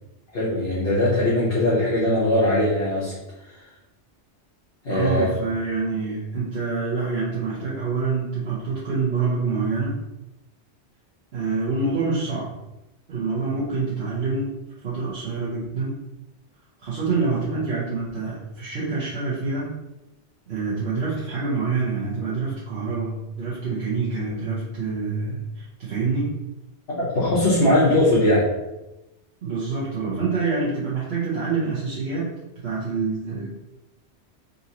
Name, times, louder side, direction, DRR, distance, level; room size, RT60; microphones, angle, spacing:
voice 1, 0.3-3.1 3.4-3.6 4.8-5.3 27.0-28.5, left 1 dB, 60° left, -9 dB, 1.2 m, -20 dB
voice 2, 4.9-10.0 11.3-12.5 13.1-14.5 14.8-16.0 16.8-19.7 20.5-26.3 29.4-32.3 32.6-33.5, right 4 dB, 70° right, -8 dB, 1.1 m, -26 dB
3.9 x 2.7 x 2.8 m, 0.96 s
omnidirectional pair, 1.1 m